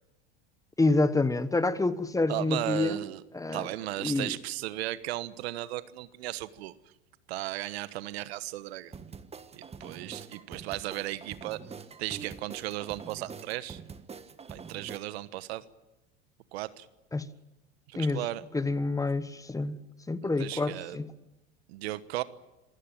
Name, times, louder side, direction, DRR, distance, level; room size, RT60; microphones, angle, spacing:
voice 1, 0.8-3.0 3.3-3.7 4.0-4.4 17.1-17.3 17.9-18.2 18.5-19.8 20.1-21.1, left 2 dB, 10° left, 1.2 m, -27 dB
voice 2, 2.3-3.2 3.5-6.7 7.3-8.9 9.5-11.6 12.0-13.8 14.5-15.6 16.5-16.9 17.9-18.4 20.2-21.0 21.7-22.2, right 16 dB, 70° right, 1.3 m, -35 dB
sound 1, 8.9-15.0, right 5 dB, 20° right, 1.4 m, -45 dB
26.5 x 16.5 x 9.1 m
hypercardioid pair, 100°, 33 cm